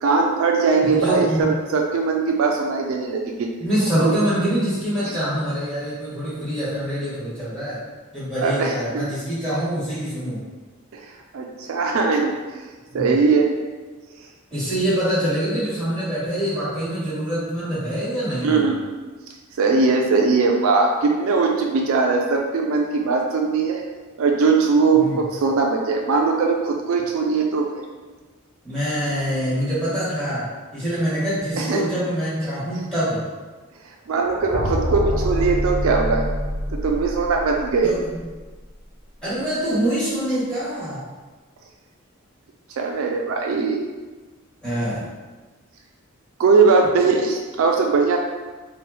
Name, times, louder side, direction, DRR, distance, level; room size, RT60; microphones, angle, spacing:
voice 1, 0.0-3.5 4.0-4.1 5.0-5.2 8.4-9.0 10.9-12.3 12.9-13.5 18.4-18.8 19.6-23.8 24.2-27.8 31.6-31.8 34.1-36.3 36.7-37.9 42.8-43.8 46.4-48.2, right 4 dB, 70° right, 1 dB, 0.3 m, -20 dB
voice 2, 0.9-1.5 3.6-7.8 8.1-10.4 12.9-13.1 14.5-18.7 24.9-25.2 28.6-33.2 37.8-38.2 39.2-41.0 44.6-45.0, equal, 5° left, -13 dB, 1.5 m, -25 dB
sound 1, 34.2-38.2, equal, 50° right, 0.8 m, -26 dB
3.1 x 2.2 x 3.1 m, 1.3 s
head